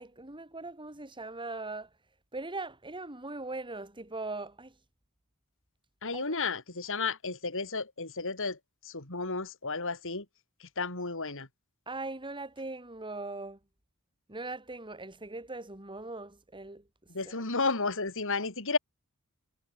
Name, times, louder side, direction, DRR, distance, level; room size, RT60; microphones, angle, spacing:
voice 1, 0.0-1.9 2.3-4.7 6.1-6.2 11.9-13.6 14.3-16.8 17.3-17.4, right 2 dB, 20° right, 3.7 m, -40 dB
voice 2, 6.0-8.6 8.8-10.2 10.6-11.5 17.1-18.8, left 4 dB, 65° left, 4.8 m, -32 dB
head